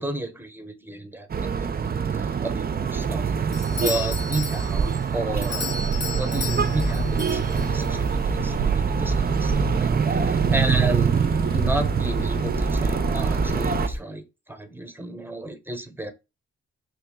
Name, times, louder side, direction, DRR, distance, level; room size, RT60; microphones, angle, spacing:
voice 1, 0.0-5.7 6.1-11.2 11.5-16.1, right 2 dB, 5° right, 0.8 m, -32 dB
sound 1, 1.3-13.9, right 6 dB, 30° right, 0.4 m, -24 dB
Doorbell, 3.5-8.0, left 5 dB, 35° left, 0.6 m, -34 dB
sound 2, 6.4-14.0, left 1 dB, 65° left, 1.0 m, -31 dB
3.1 x 3.0 x 3.5 m
supercardioid pair, 45°, 31 cm